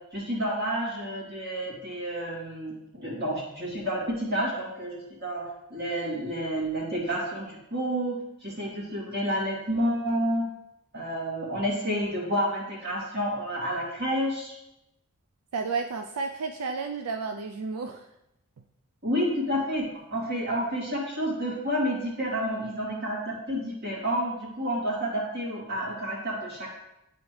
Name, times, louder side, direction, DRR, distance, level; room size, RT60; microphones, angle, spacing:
voice 1, 0.1-10.4 10.9-14.5 19.0-26.7, equal, 45° right, -5 dB, 2.4 m, -30 dB
voice 2, 15.5-18.0, right 4 dB, 90° right, 5 dB, 0.4 m, -32 dB
10.5 x 4.1 x 3.2 m, 0.87 s
head